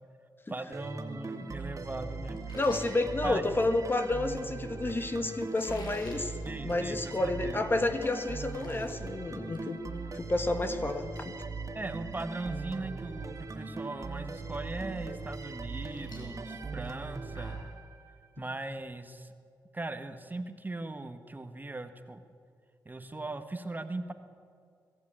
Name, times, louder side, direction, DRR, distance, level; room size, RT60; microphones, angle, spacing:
voice 1, 0.5-2.6 3.2-3.6 6.4-7.6 11.7-17.6 18.4-19.3 19.7-22.2 22.8-24.1, right 2 dB, 25° right, 8 dB, 1.5 m, -39 dB
sound 1, 0.7-18.3, right 4 dB, 45° right, 2.4 m, -40 dB
sound 2, 2.4-3.9 5.4-6.2 6.6-6.8 7.2-7.3 7.8-7.9 8.2-8.9 9.3-9.6 9.9-10.1 11.9-12.0 12.5-12.8 13.0-13.5 14.0-14.1 15.4-17.7, left 2 dB, 65° left, 5.6 m, -51 dB
voice 2, 2.5-6.3 6.6-9.8 10.1-11.4, left 2 dB, 30° left, 8 dB, 1.6 m, -30 dB
21.5 x 14.5 x 9.0 m, 2.2 s
cardioid pair, 70°, 8 cm